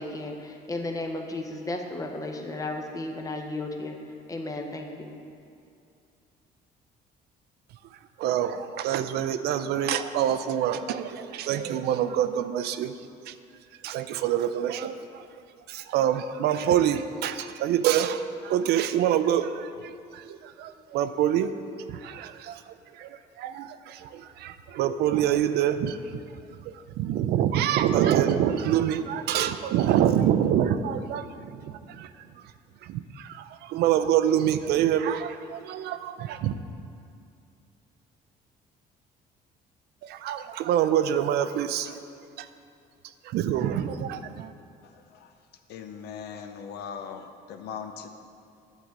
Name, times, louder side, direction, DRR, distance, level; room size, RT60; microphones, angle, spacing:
voice 1, 0.0-4.0 4.3-5.1, left 2 dB, 20° left, 4 dB, 0.9 m, -34 dB
voice 2, 8.2-12.9 13.3-13.4 13.8-15.3 15.7-26.2 26.7-32.1 32.8-36.5 40.0-42.0 42.4-42.5 43.2-44.5, right 10 dB, 75° right, 11 dB, 0.4 m, -26 dB
voice 3, 44.8-45.3 45.7-48.1, left 7 dB, 75° left, 7 dB, 0.7 m, -40 dB
9.8 x 3.9 x 7.3 m, 2.5 s
cardioid pair, 110°, 17 cm